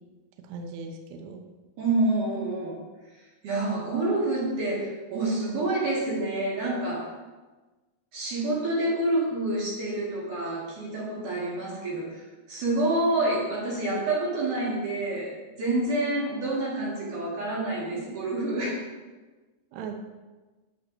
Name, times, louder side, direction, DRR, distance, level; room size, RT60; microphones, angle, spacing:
voice 1, 0.4-1.4 19.7-20.0, right 4 dB, 75° right, 4 dB, 2.6 m, -38 dB
voice 2, 1.8-2.8 3.4-7.1 8.1-12.2 12.5-18.8, right 2 dB, 55° right, -5 dB, 2.8 m, -28 dB
12.5 x 7.3 x 2.7 m, 1.2 s
omnidirectional pair, 5.3 m